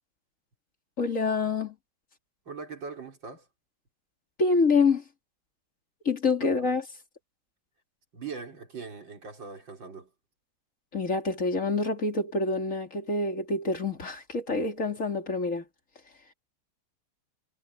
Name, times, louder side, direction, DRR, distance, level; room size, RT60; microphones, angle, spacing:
voice 1, 1.0-1.7 4.4-5.0 6.0-6.8 10.9-15.6, left 3 dB, 35° left, 3.1 m, -26 dB
voice 2, 2.5-3.5 6.4-6.8 8.1-10.1, right 5 dB, 60° right, 4.7 m, -41 dB
omnidirectional pair, 2.3 m